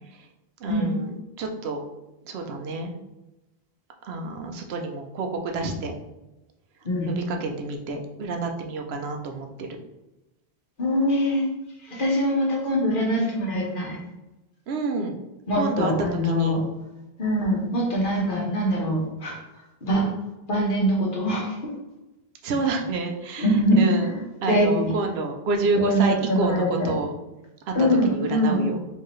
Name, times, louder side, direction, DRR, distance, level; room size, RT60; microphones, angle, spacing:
voice 1, 0.6-1.8 2.3-2.9 4.1-5.9 7.1-9.7 14.7-15.2 15.6-15.9 16.2-16.6 22.4-24.1 24.4-27.1 27.7-27.8 28.0-28.8, right 3 dB, 85° right, 3 dB, 0.9 m, -29 dB
voice 2, 10.8-11.5 11.8-14.0 15.5-16.6 17.2-19.4 19.8-20.1 20.5-21.6 23.4-24.9 25.7-26.9 27.7-28.6, equal, 55° left, -2 dB, 1.3 m, -23 dB
4.5 x 3.3 x 3.1 m, 0.99 s
omnidirectional pair, 1.0 m